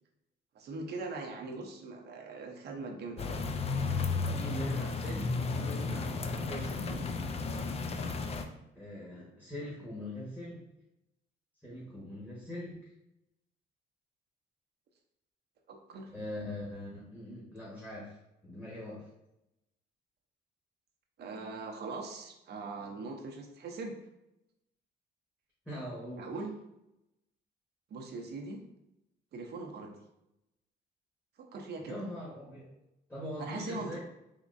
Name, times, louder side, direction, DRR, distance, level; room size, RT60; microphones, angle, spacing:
voice 1, 0.5-3.4 6.9-8.0 15.7-16.1 21.2-23.9 26.2-26.5 27.9-28.6 29.3-29.9 31.4-32.0 33.4-34.0, right 3 dB, 55° right, 1 dB, 0.6 m, -41 dB
sound 1, 3.2-8.5, left 4 dB, 30° left, 0.4 m, -33 dB
voice 2, 4.3-6.9 8.7-10.6 11.6-12.8 16.1-18.1 18.4-19.1 25.6-26.3 31.8-32.7 33.1-34.0, left 1 dB, 10° left, -8 dB, 1.1 m, -42 dB
3.5 x 2.9 x 2.5 m, 0.87 s
cardioid pair, 90°, 20 cm